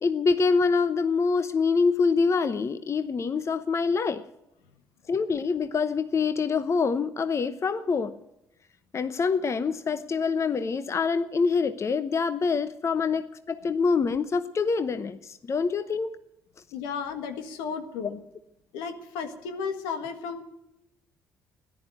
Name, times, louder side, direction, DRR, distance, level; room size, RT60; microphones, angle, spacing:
voice 1, 0.0-4.2 5.1-8.2 8.9-16.2, left 5 dB, 40° left, 12 dB, 0.8 m, -25 dB
voice 2, 16.7-18.2 18.7-20.4, left 6 dB, 85° left, 7 dB, 1.7 m, -34 dB
13.5 x 10.5 x 9.1 m, 0.88 s
supercardioid pair, 60°, 7 cm